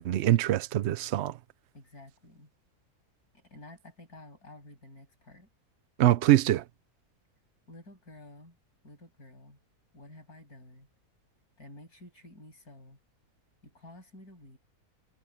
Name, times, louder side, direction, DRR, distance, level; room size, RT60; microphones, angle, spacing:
voice 1, 0.0-1.4 6.0-6.6, right 13 dB, 65° right, 0.7 m, -24 dB
voice 2, 1.7-2.5 3.3-5.5 7.7-8.6 8.8-9.6 9.9-10.9 11.6-13.0 13.6-14.6, left 1 dB, 70° left, 7.6 m, -51 dB
omnidirectional pair, 1.7 m